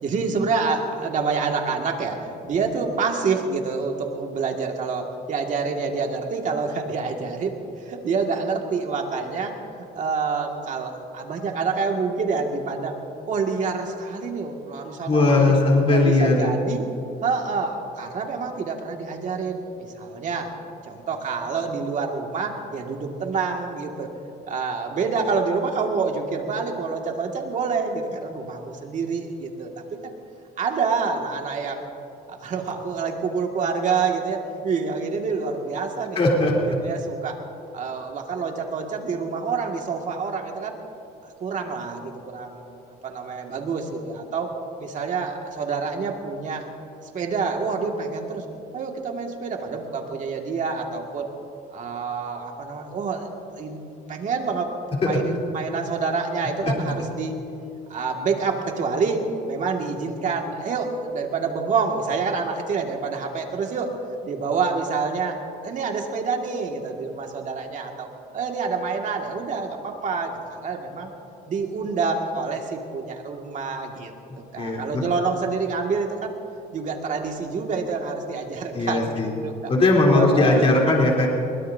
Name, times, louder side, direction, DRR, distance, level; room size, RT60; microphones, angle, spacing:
voice 1, 0.0-9.6 9.9-13.0 13.3-15.5 15.9-16.9 17.2-20.5 20.8-24.1 24.4-30.1 30.6-31.9 32.3-36.2 36.8-37.4 37.7-40.7 41.4-46.7 47.1-48.4 48.7-51.3 51.7-53.3 53.5-53.8 54.1-54.8 55.0-57.5 57.9-63.9 64.2-68.1 68.3-71.1 71.5-76.3 76.7-79.7 80.1-80.7, right 5 dB, 50° right, 2 dB, 2.1 m, -27 dB
voice 2, 15.1-16.5 36.2-36.5 55.0-55.2 56.6-56.9 74.6-75.0 78.7-79.3 79.7-81.3, left 2 dB, 35° left, -3 dB, 3.6 m, -19 dB
22.0 x 20.5 x 2.8 m, 2.8 s
cardioid pair, 110°, 17 cm